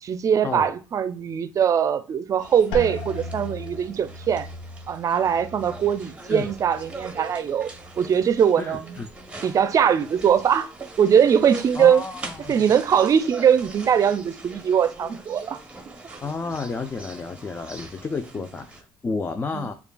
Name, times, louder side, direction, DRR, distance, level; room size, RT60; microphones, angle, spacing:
voice 1, 0.0-4.5 4.9-7.7 8.0-9.0 9.4-10.7 11.0-12.0 12.5-15.6 19.5-19.7, right 8 dB, 45° right, 0.5 m, -21 dB
sound 1, 2.4-18.8, right 2 dB, 15° right, 0.8 m, -42 dB
sound 2, 2.7-8.3 8.7-9.4 9.9-10.3, left 2 dB, 80° left, 0.5 m, -38 dB
voice 2, 8.6-9.1 11.7-12.6 16.2-19.7, left 4 dB, 30° left, 0.4 m, -31 dB
6.6 x 2.3 x 2.3 m
supercardioid pair, 70°, 8 cm